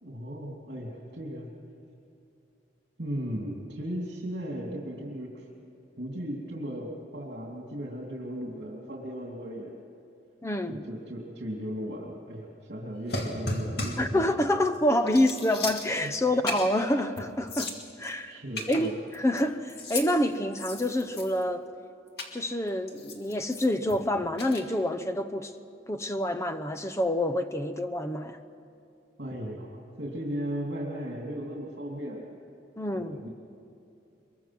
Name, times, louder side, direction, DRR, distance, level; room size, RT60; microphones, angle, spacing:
voice 1, 0.0-1.5 3.0-5.5 6.0-9.8 10.7-14.5 16.0-16.3 18.2-18.9 29.2-32.3 32.9-33.3, equal, 65° right, 2.8 m, -36 dB
voice 2, 10.4-10.8 14.0-18.4 18.7-21.7 22.3-25.5 25.9-28.4 32.8-33.2, left 1 dB, 15° left, 0.8 m, -27 dB
sound 1, 13.1-14.1 14.6-14.8 15.1-16.2 16.5-16.8 17.2-17.3 17.5-18.1 18.6-19.4 19.7-20.1 20.5-21.5 22.2-22.3 22.9-24.0 24.4-24.6, left 2 dB, 60° left, 2.4 m, -35 dB
23.5 x 22.5 x 6.1 m
head